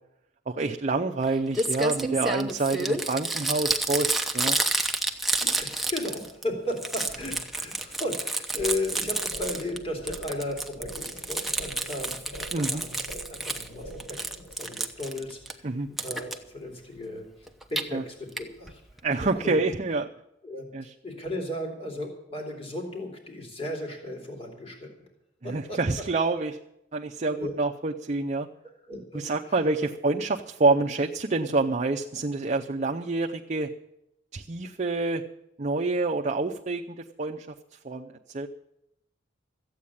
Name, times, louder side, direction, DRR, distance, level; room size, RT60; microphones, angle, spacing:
voice 1, 0.5-4.6 12.5-12.8 15.6-15.9 17.9-18.0 19.0-20.1 20.7-20.9 25.4-26.6 26.9-28.5 29.1-33.7 34.3-35.2 35.6-37.5 37.8-38.5, right 3 dB, 40° right, 2 dB, 0.6 m, -27 dB
Crumpling crinkling, 1.2-1.3 1.5-6.4 6.7-9.8 10.1-13.7 14.0-15.5 16.0-16.3 17.5-17.8 18.4-18.5 18.7-18.8 19.0-19.1, right 2 dB, ahead, 0.9 m, -29 dB
voice 2, 5.4-13.0 13.3-14.2 14.5-18.8 19.2-19.7 20.4-24.9 25.4-25.8 27.4-27.5 28.9-29.6, left 1 dB, 30° left, 1 dB, 3.0 m, -35 dB
sound 1, 8.6-14.6, right 1 dB, 60° left, 4.0 m, -44 dB
14.0 x 8.6 x 8.5 m, 0.82 s
head